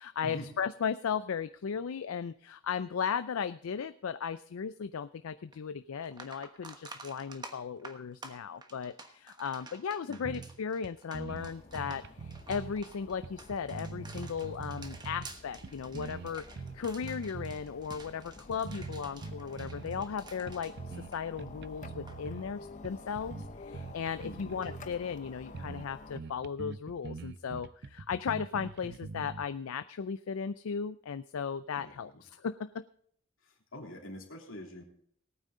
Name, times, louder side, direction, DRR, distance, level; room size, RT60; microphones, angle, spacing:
voice 1, 0.0-32.8, left 6 dB, 85° left, 13 dB, 0.4 m, -36 dB
sound 1, 5.5-5.6 6.0-21.6 21.9-22.2 24.6-24.7, right 3 dB, 20° right, 1.2 m, -51 dB
voice 2, 10.1-10.4 24.2-24.5 31.7-32.2 33.4-34.8, left 1 dB, 70° left, 1 dB, 3.1 m, -45 dB
sound 2, 10.2-10.6 10.8-10.9 11.1-12.8 13.2-15.3 15.6-17.6 17.9-18.1 18.5-20.1 20.5-21.1 21.4-22.4 22.8-24.9 25.3-25.4 25.5-25.9 26.1-29.4, right 4 dB, 55° right, 0.5 m, -43 dB
sound 3, 11.3-26.2, left 3 dB, 35° left, 0.7 m, -51 dB
18.5 x 9.1 x 3.7 m, 0.65 s
head